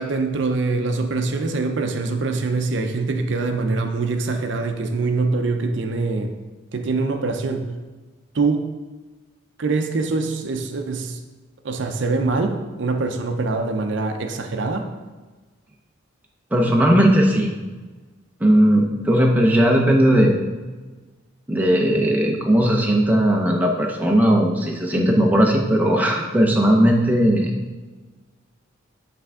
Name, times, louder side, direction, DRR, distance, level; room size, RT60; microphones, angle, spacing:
voice 1, 0.0-6.3 6.7-7.7 8.3-8.7 9.6-11.2 11.6-14.9, right 3 dB, 60° right, 5 dB, 0.5 m, -24 dB
voice 2, 16.5-17.5 18.4-20.3 21.5-27.5, equal, 10° right, 0 dB, 0.6 m, -17 dB
8.3 x 3.4 x 3.5 m, 1.3 s
head